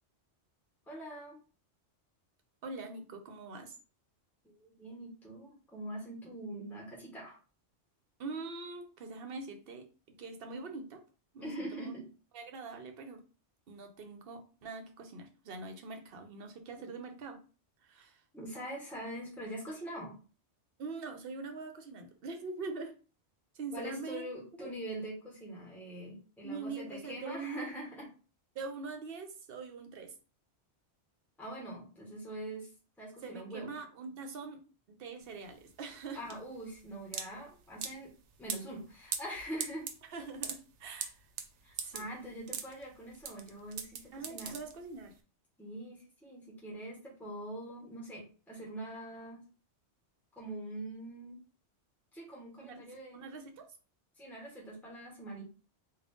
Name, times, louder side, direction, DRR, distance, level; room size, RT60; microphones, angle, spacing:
voice 1, 0.9-1.4 4.4-7.4 11.4-12.1 16.7-16.9 18.3-20.2 23.7-28.1 31.4-32.7 33.0-33.7 36.1-38.1 38.4-39.9 41.6-44.5 45.6-49.4 50.3-51.4 52.1-53.2 54.2-55.5, right 1 dB, ahead, -3 dB, 1.2 m, -43 dB
voice 2, 2.6-3.7 8.2-11.0 11.3-11.9 12.3-13.2 13.7-17.4 17.8-18.2 20.8-23.0 23.5-24.2 24.6-24.7 26.4-27.7 28.5-30.1 33.2-34.6 34.9-36.2 40.1-41.2 41.8-42.1 44.1-45.1 52.6-52.8 53.1-53.6, right 4 dB, 60° right, 6 dB, 0.9 m, -43 dB
sound 1, 35.2-45.1, right 7 dB, 85° right, 0.9 m, -42 dB
3.7 x 2.4 x 3.5 m, 0.35 s
omnidirectional pair, 1.2 m